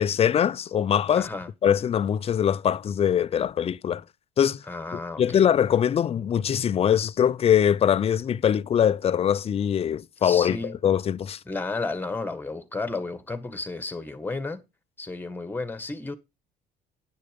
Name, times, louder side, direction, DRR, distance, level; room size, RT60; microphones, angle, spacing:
voice 1, 0.0-1.3 1.6-4.0 4.4-4.6 5.2-11.4, left 9 dB, 35° left, 0.5 m, -22 dB
voice 2, 1.2-1.5 4.7-5.5 10.2-10.7 11.4-14.6 15.0-16.2, left 3 dB, 10° left, 1.6 m, -32 dB
10.5 x 6.6 x 5.2 m
cardioid pair, 110°, 17 cm